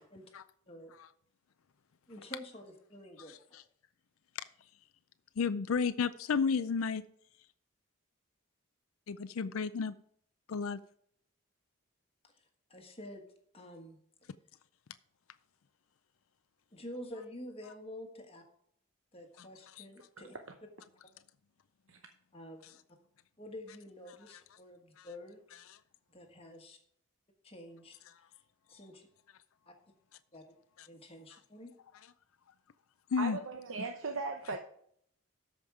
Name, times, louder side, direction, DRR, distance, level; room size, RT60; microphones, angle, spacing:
voice 1, 2.1-3.6 12.2-12.4 12.7-13.3 13.5-14.0 16.7-18.4 19.1-20.4 22.3-22.8 23.4-25.4 26.1-26.8 27.4-28.0 28.3-28.4 28.7-29.1 29.7-29.8 30.3-30.4 30.9-31.7, left 1 dB, 25° left, 1.4 m, -48 dB
voice 2, 5.4-7.0 9.1-9.9 10.5-10.8 25.0-25.1 33.1-33.4, left 5 dB, 75° left, 0.5 m, -32 dB
voice 3, 33.2-34.6, right 3 dB, 65° right, 0.8 m, -37 dB
13.0 x 5.2 x 4.8 m
head